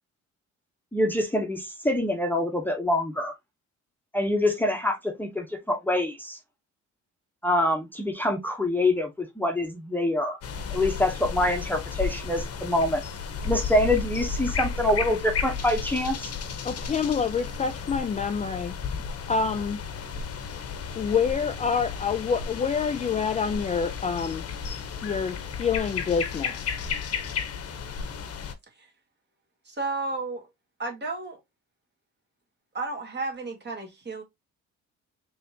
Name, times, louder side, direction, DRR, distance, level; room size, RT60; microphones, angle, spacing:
voice 1, 0.9-3.3 4.1-6.4 7.4-10.4 10.7-13.0 13.4-16.3, left 1 dB, 5° left, 0.9 m, -25 dB
sound 1, 10.4-28.5, left 6 dB, 50° left, 0.8 m, -33 dB
voice 2, 16.6-18.7 19.3-19.8 21.0-24.4 25.0-26.7, left 6 dB, 25° left, 0.3 m, -27 dB
voice 3, 29.7-30.5 30.8-31.4 32.7-34.2, right 3 dB, 35° right, 1.8 m, -32 dB
4.1 x 3.1 x 2.7 m
cardioid pair, 90°, 30 cm